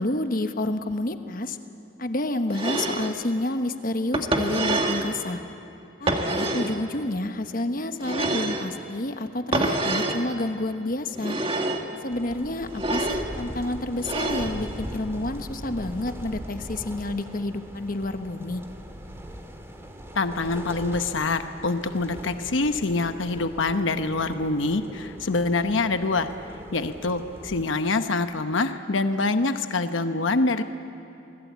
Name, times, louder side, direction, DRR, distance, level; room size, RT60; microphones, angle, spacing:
voice 1, 0.0-1.6 2.0-5.4 6.0-11.4 12.0-18.6, left 1 dB, 45° left, 8 dB, 1.2 m, -29 dB
sound 1, 2.5-3.2 4.1-5.1 6.1-6.8 8.0-8.7 9.5-10.2 11.2-11.9 12.7-13.3 14.0-14.6, right 2 dB, 30° right, 1.8 m, -26 dB
sound 2, 12.1-27.6, equal, 15° right, 2.0 m, -40 dB
voice 2, 20.2-26.3 26.7-30.6, left 3 dB, 85° left, 9 dB, 0.9 m, -25 dB
28.0 x 21.0 x 8.3 m, 2.8 s
head